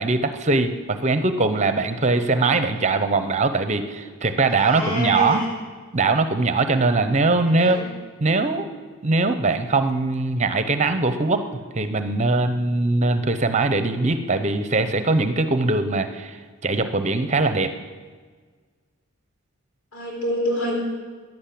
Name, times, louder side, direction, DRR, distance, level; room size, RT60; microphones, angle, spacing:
voice 1, 0.0-5.5 5.9-7.8 8.2-8.7 9.0-11.4 11.7-17.7, right 3 dB, 30° right, 9 dB, 0.7 m, -21 dB
voice 2, 4.6-5.5 7.4-7.9 19.9-20.8, equal, 80° left, -1 dB, 4.6 m, -26 dB
11.5 x 11.0 x 8.5 m, 1.5 s
head